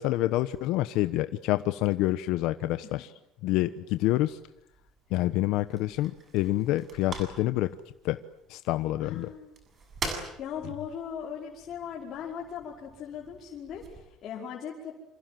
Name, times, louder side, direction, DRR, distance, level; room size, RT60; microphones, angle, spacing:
voice 1, 0.0-3.1 3.4-4.4 5.1-7.7 8.0-8.2 8.5-9.3, left 16 dB, 70° left, 11 dB, 1.1 m, -27 dB
sound 1, 4.1-14.0, right 3 dB, 25° right, 7.5 m, -44 dB
voice 2, 9.0-9.6 10.1-15.0, left 7 dB, 40° left, -3 dB, 5.3 m, -39 dB
28.0 x 27.0 x 7.8 m, 0.83 s
cardioid pair, 160°, 0 cm